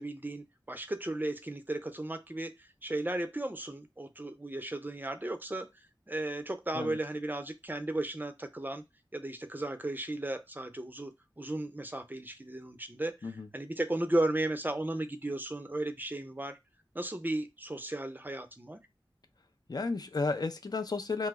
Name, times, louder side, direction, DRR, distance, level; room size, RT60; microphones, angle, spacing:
voice 1, 0.0-5.7 6.1-8.8 9.1-11.1 11.4-16.6 16.9-18.8, right 1 dB, 20° right, 0.4 m, -35 dB
voice 2, 19.7-21.3, left 3 dB, 50° left, 0.4 m, -33 dB
2.9 x 2.0 x 3.4 m
wide cardioid pair, 50°, 9 cm